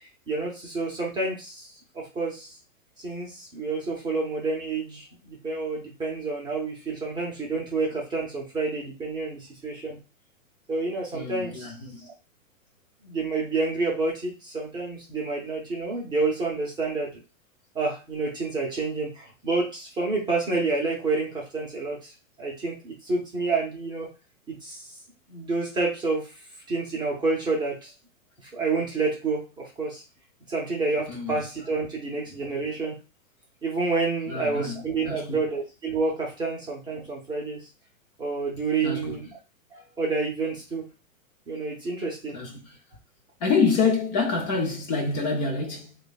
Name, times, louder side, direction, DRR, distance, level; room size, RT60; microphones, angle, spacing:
voice 1, 0.3-1.7 1.9-2.5 3.0-10.0 10.7-11.7 12.0-12.1 13.0-17.1 17.7-22.1 22.4-24.1 24.6-24.9 25.3-26.3 26.7-27.9 28.5-29.4 29.8-30.0 30.5-32.9 33.6-37.6 38.2-39.4 39.7-40.8 41.5-42.3, right 3 dB, 10° right, 0.7 m, -29 dB
voice 2, 11.1-12.0 31.1-31.3 34.3-35.4 38.8-39.2 42.3-42.8 43.4-46.0, left 4 dB, 30° left, 0.8 m, -27 dB
3.0 x 2.3 x 4.1 m
hypercardioid pair, 140°, 39 cm